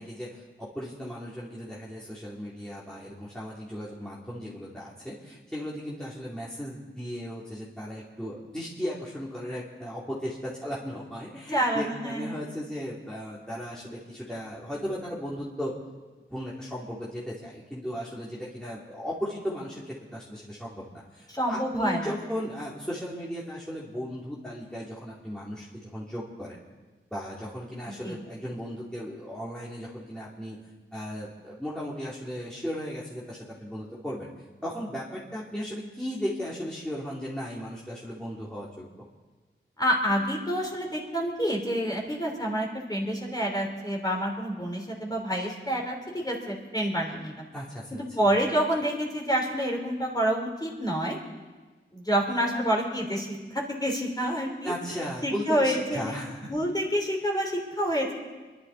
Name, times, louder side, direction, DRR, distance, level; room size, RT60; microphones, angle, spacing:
voice 1, 0.0-15.7 16.3-20.8 21.1-26.6 27.1-30.6 30.9-34.3 34.6-38.9 47.5-48.0 54.6-56.5, equal, 5° left, -7 dB, 2.8 m, -36 dB
voice 2, 11.5-12.3 21.3-22.0 28.0-28.1 39.8-47.5 47.9-51.2 51.9-54.7 55.2-56.2 56.5-58.1, equal, 20° left, 0 dB, 3.6 m, -28 dB
26.5 x 11.5 x 4.1 m, 1.3 s
wide cardioid pair, 65°, 21 cm